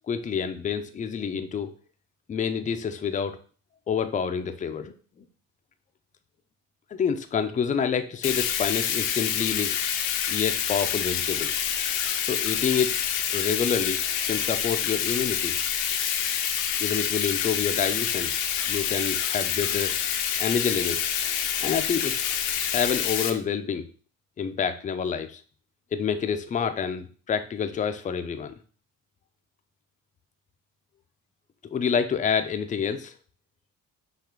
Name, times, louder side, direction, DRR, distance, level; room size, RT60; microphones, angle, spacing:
voice 1, 0.1-1.7 2.3-3.4 3.9-4.9 6.9-9.7 10.3-11.5 12.2-13.0 13.3-14.0 14.3-15.6 16.8-18.3 18.7-19.9 20.4-21.1 21.6-22.3 22.7-23.9 24.4-25.4 25.9-28.5 31.7-33.1, left 7 dB, 20° left, 8 dB, 0.4 m, -28 dB
Bathtub (filling or washing), 8.2-23.3, left 9 dB, 85° left, 0.7 m, -27 dB
5.7 x 2.4 x 3.7 m, 0.40 s
cardioid pair, 105°, 35 cm